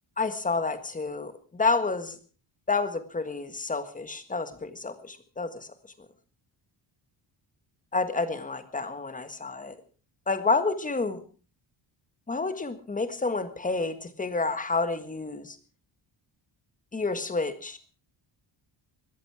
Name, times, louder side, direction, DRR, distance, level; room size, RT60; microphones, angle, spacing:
voice 1, 0.2-2.2 2.7-5.7 7.9-9.8 10.3-11.2 12.3-15.6 16.9-17.8, left 3 dB, 15° left, 10 dB, 1.6 m, -29 dB
21.0 x 14.0 x 4.8 m, 0.38 s
wide cardioid pair, 175°, 47 cm